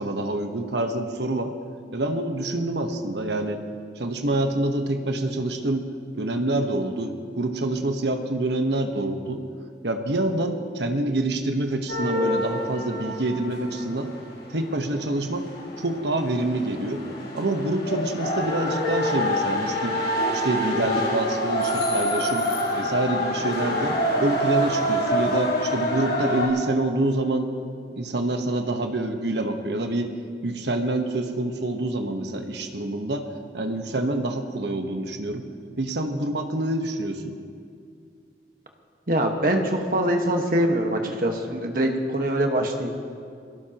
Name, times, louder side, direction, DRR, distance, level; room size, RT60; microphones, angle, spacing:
voice 1, 0.0-1.5 1.9-3.6 4.0-5.9 6.2-9.4 9.8-14.1 14.5-15.5 15.8-17.0 17.3-20.0 20.3-27.5 28.0-30.1 30.4-33.3 33.5-35.5 35.8-37.4, right 2 dB, 80° right, 5 dB, 1.2 m, -26 dB
sound 1, 11.9-26.5, equal, 75° left, 5.1 m, -27 dB
voice 2, 39.1-42.9, right 1 dB, 55° right, 3 dB, 1.5 m, -23 dB
22.5 x 17.5 x 3.0 m, 2.3 s
head